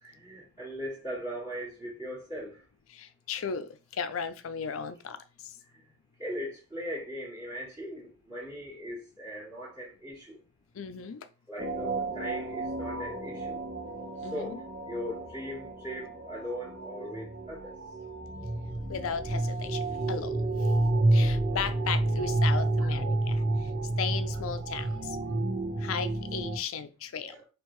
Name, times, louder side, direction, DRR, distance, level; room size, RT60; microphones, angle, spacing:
voice 1, 0.0-2.6 5.7-5.8 6.2-10.4 11.5-13.6 14.3-17.7 27.2-27.4, equal, 15° right, 1.3 m, -39 dB
voice 2, 2.9-5.2 10.8-11.3 14.2-14.6 18.9-20.4 21.1-23.4 24.0-25.2 25.8-27.3, left 6 dB, 70° left, 0.4 m, -35 dB
sound 1, 11.6-26.6, right 2 dB, 65° right, 1.3 m, -30 dB
4.4 x 3.0 x 3.0 m
head